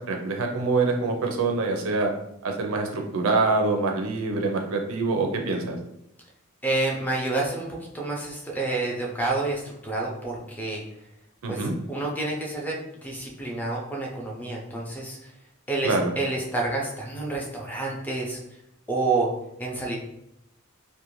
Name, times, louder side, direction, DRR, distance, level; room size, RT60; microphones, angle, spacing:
voice 1, 0.0-2.1 2.4-5.8 11.4-11.7 15.8-16.1, right 3 dB, 70° right, 2 dB, 0.5 m, -25 dB
voice 2, 6.6-10.8 11.5-12.8 13.0-15.2 15.7-18.4 18.9-19.3 19.6-20.0, right 2 dB, 10° left, -2 dB, 0.4 m, -28 dB
2.5 x 2.1 x 3.0 m, 0.81 s
head